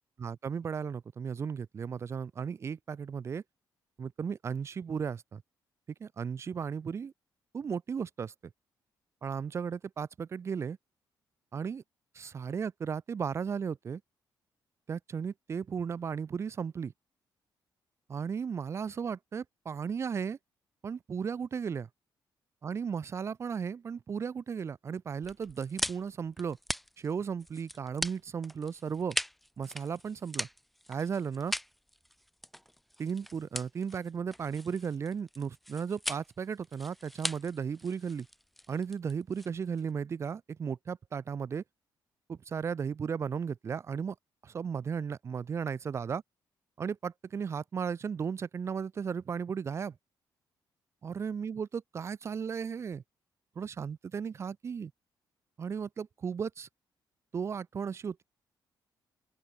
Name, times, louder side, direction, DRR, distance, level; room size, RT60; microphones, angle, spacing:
voice 1, 0.2-3.4 4.0-5.4 6.0-7.1 7.5-8.5 9.2-10.8 11.5-11.8 12.1-14.0 14.9-16.9 18.1-20.4 20.8-21.9 22.6-26.6 27.0-29.2 29.6-30.5 30.9-31.5 33.0-38.3 38.7-41.6 42.3-44.1 44.4-46.2 46.8-50.0 51.0-53.0 53.5-54.9 55.6-56.7 57.3-58.2, right 6 dB, 35° right, 1.2 m, -35 dB
FP Breaking Branches, 25.2-39.9, equal, ahead, 0.3 m, -40 dB
open air
cardioid pair, 160°, 8 cm